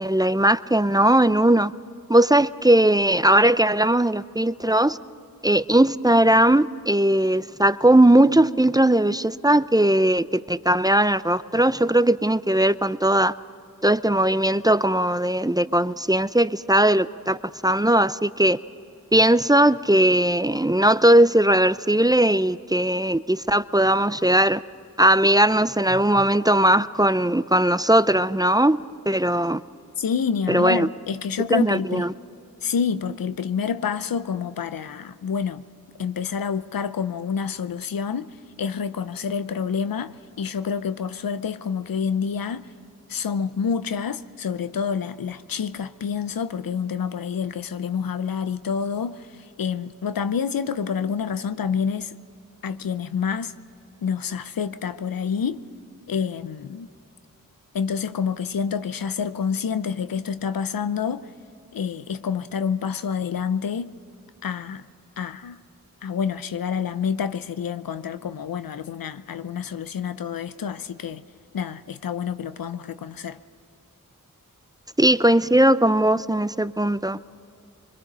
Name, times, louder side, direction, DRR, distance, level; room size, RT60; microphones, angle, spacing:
voice 1, 0.0-1.7 2.1-5.0 5.4-13.3 13.8-17.4 17.6-18.6 19.1-24.6 25.0-28.8 29.1-29.6 30.5-30.9 31.5-32.1 75.0-77.2, right 1 dB, 10° right, 0.5 m, -19 dB
voice 2, 30.0-32.1 32.6-35.6 36.0-38.3 38.6-42.7 43.1-49.3 49.6-52.1 52.6-53.5 54.0-55.6 56.1-56.9 57.7-61.3 61.7-63.9 64.4-64.9 65.2-65.6 66.0-71.2 71.5-73.4, left 6 dB, 85° left, 0.7 m, -28 dB
24.0 x 22.0 x 5.6 m
cardioid pair, 40°, 34 cm